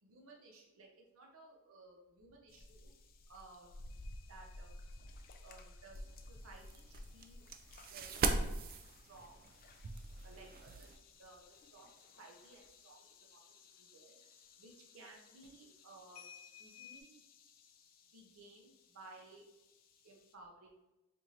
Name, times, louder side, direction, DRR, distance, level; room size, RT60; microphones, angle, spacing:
voice 1, 0.0-2.9 3.3-3.8 4.3-4.7 5.4-7.4 7.9-8.3 9.0-9.4 10.2-17.2 18.1-19.5 20.0-20.9, right 2 dB, 65° right, -1 dB, 0.7 m, -58 dB
sound 1, 2.5-20.3, left 1 dB, 45° left, 0.4 m, -57 dB
sound 2, 3.9-12.2 12.4-12.9 13.3-14.4 14.7-15.3 16.1-17.0, left 8 dB, 85° left, 0.7 m, -62 dB
sound 3, 6.0-11.0, right 4 dB, 40° right, 0.3 m, -40 dB
4.4 x 2.6 x 2.8 m, 0.96 s
head